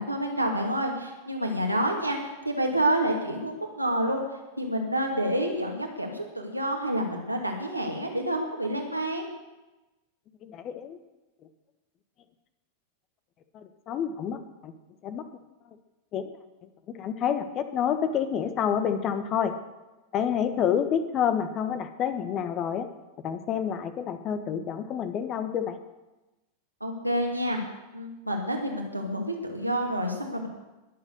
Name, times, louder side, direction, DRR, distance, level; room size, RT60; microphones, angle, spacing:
voice 1, 0.0-4.2 4.6-9.3 26.8-27.6 27.9-30.5, right 1 dB, 90° right, 1 dB, 2.5 m, -28 dB
voice 2, 10.4-11.0 13.5-14.7 15.0-15.3 16.1-16.3 16.6-19.5 20.1-22.9 23.2-25.8, left 8 dB, 35° left, 10 dB, 1.2 m, -28 dB
21.0 x 7.6 x 6.6 m, 1.1 s
figure-of-eight pair, 90°, 0 cm